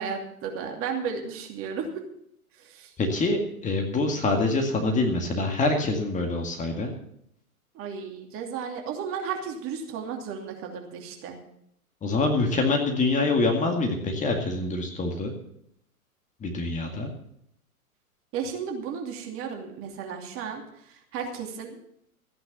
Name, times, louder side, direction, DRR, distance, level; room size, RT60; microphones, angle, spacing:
voice 1, 0.0-2.0 2.6-2.9 7.7-11.4 18.3-20.6 20.9-21.8, right 6 dB, 30° right, 3 dB, 2.8 m, -34 dB
voice 2, 3.0-6.9 12.0-15.3 16.4-17.1, left 2 dB, 15° left, 4 dB, 2.1 m, -25 dB
14.5 x 9.9 x 6.9 m, 0.73 s
figure-of-eight pair, 110°, 44 cm